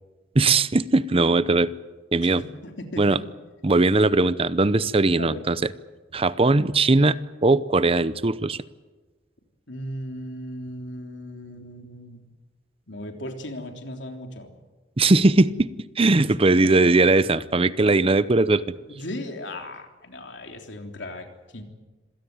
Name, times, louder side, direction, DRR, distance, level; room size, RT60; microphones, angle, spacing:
voice 1, 0.3-1.7 2.1-2.4 3.0-3.2 3.6-5.6 6.1-8.6 15.0-15.7 16.0-18.6, right 2 dB, 30° right, 16 dB, 0.7 m, -19 dB
voice 2, 2.2-3.2 5.2-5.4 9.7-12.2 12.9-14.6 16.5-16.7 18.9-21.6, left 1 dB, 80° left, 4 dB, 3.4 m, -37 dB
26.5 x 17.5 x 9.5 m, 1.2 s
head